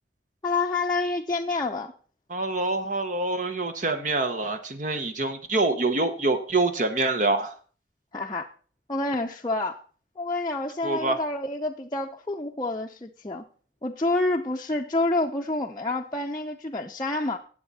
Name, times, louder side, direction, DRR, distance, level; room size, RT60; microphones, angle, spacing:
voice 1, 0.4-1.9 8.1-8.5 8.9-9.8 10.2-13.4 13.8-17.4, left 2 dB, 25° left, 0 dB, 0.6 m, -28 dB
voice 2, 2.3-7.5 10.8-11.2, right 2 dB, 45° right, 8 dB, 0.9 m, -26 dB
18.0 x 7.4 x 4.1 m, 0.42 s
head